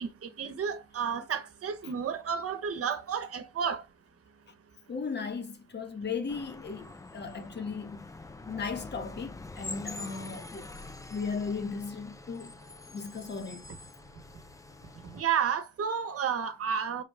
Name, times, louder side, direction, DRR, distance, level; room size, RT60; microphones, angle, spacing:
voice 1, 0.0-3.8 15.0-17.0, right 7 dB, 50° right, 1.0 m, -31 dB
voice 2, 4.9-8.1 8.4-10.7 11.1-12.5 12.9-13.7, left 5 dB, 35° left, 1.1 m, -36 dB
sound 1, 6.3-15.2, left 2 dB, 10° left, 0.4 m, -45 dB
5.8 x 2.4 x 3.3 m
cardioid pair, 90°, 30 cm